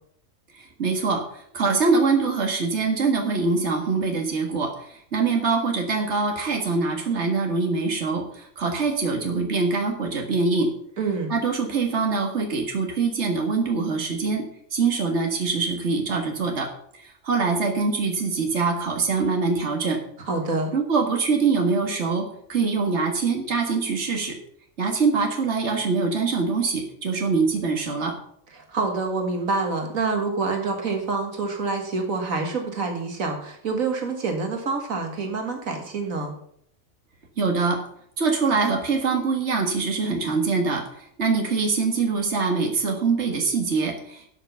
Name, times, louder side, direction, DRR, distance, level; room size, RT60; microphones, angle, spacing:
voice 1, 0.5-10.7 11.3-14.5 14.7-16.7 17.0-20.0 20.7-24.4 24.8-28.1 37.4-37.8 38.2-44.3, right 4 dB, 55° right, 2 dB, 2.1 m, -24 dB
voice 2, 11.0-11.3 20.3-20.7 28.5-36.3, right 4 dB, 85° right, 3 dB, 2.2 m, -27 dB
12.5 x 6.0 x 6.9 m, 0.66 s
omnidirectional pair, 1.4 m